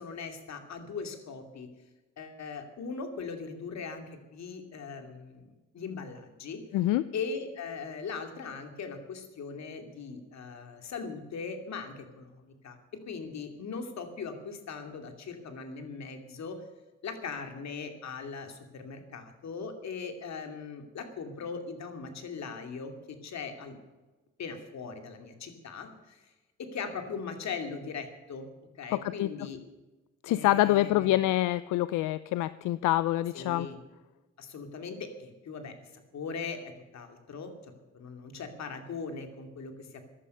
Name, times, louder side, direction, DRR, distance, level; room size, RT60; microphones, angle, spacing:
voice 1, 0.0-1.7 2.2-5.5 5.7-6.6 7.1-12.8 13.1-16.6 17.0-23.8 24.4-26.3 26.6-28.5 28.8-29.6 30.3-31.2 33.3-33.8 34.4-40.1, left 5 dB, 60° left, 6 dB, 2.6 m, -40 dB
voice 2, 6.7-7.0 28.9-29.3 30.2-33.7, left 15 dB, 85° left, 15 dB, 0.5 m, -26 dB
15.0 x 11.0 x 6.9 m, 1.1 s
cardioid pair, 90°, 30 cm